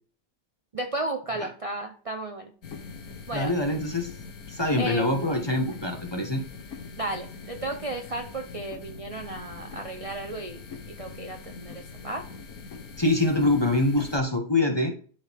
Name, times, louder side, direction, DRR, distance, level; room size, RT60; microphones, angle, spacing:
voice 1, 0.7-2.5 3.3-3.5 4.8-5.1 7.0-10.6 11.0-12.3, right 2 dB, 45° right, 5 dB, 0.4 m, -34 dB
sound 1, 2.6-14.2, left 5 dB, 60° left, 1.5 m, -43 dB
voice 2, 3.3-4.1 4.5-6.4 13.0-14.9, left 2 dB, 20° left, 3 dB, 1.0 m, -24 dB
12.0 x 4.9 x 3.5 m, 0.43 s
omnidirectional pair, 1.8 m